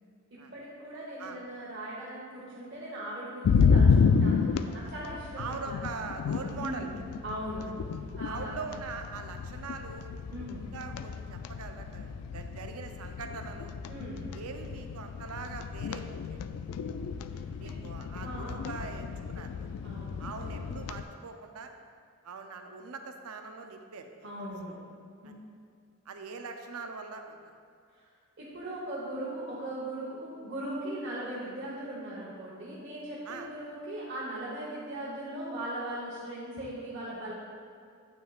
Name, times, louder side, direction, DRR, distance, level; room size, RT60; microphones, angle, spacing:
voice 1, 0.5-5.8 6.5-7.0 7.2-7.7 8.1-8.5 10.3-10.6 13.9-14.3 17.6-17.7 18.2-18.7 19.8-20.2 24.2-24.8 25.2-25.4 28.4-37.3, right 1 dB, 50° right, -8 dB, 1.2 m, -39 dB
sound 1, 3.4-21.0, left 5 dB, 85° left, 0.3 m, -30 dB
voice 2, 5.4-7.0 8.2-10.1 10.7-13.7 14.3-16.4 17.6-19.7 20.2-21.7 22.2-24.8 25.2-25.3 26.1-27.5 33.3-33.5, right 4 dB, 85° right, 5 dB, 0.6 m, -42 dB
8.9 x 5.9 x 2.4 m, 2.3 s
head